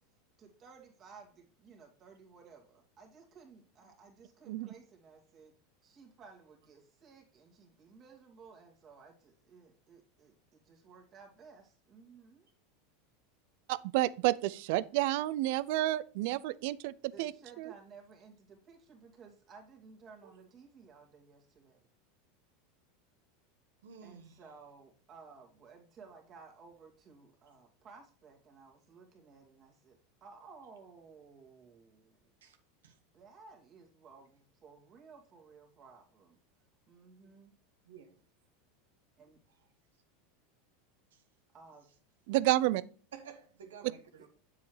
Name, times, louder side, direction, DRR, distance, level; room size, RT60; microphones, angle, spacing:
voice 1, 0.4-5.5 5.8-12.5 17.1-21.8 24.0-32.3 33.1-36.4 36.9-37.5 39.2-39.4 41.5-41.9 44.2-44.3, right 5 dB, 40° right, 2.4 m, -56 dB
voice 2, 13.7-17.3 17.6-17.7 42.3-42.8, right 16 dB, 65° right, 0.4 m, -30 dB
voice 3, 23.8-24.4 32.4-32.6 32.8-33.0 37.8-38.2 41.1-41.2 43.1-44.3, right 7 dB, 80° right, 1.1 m, -52 dB
7.4 x 7.3 x 3.2 m
hypercardioid pair, 90°, 0 cm